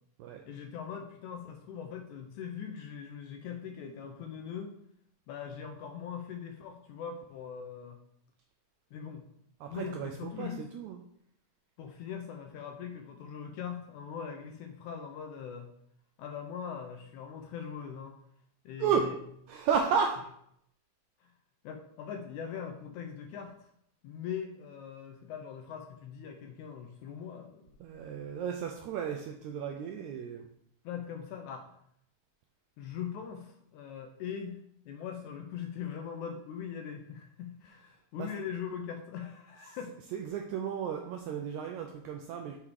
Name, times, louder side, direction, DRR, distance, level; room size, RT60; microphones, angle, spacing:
voice 1, 0.5-4.8 5.3-8.0 8.9-9.3 9.7-10.7 11.8-15.7 16.2-18.2 18.7-19.2 21.2-21.3 21.6-23.7 24.0-27.7 30.8-31.7 32.8-40.0, left 7 dB, 80° left, 4 dB, 1.8 m, -41 dB
voice 2, 9.6-11.0 18.8-19.1 19.5-20.2 27.8-30.4 38.2-38.3 40.1-42.6, right 7 dB, 85° right, 2 dB, 1.7 m, -33 dB
6.8 x 3.6 x 4.7 m, 0.71 s
omnidirectional pair, 3.8 m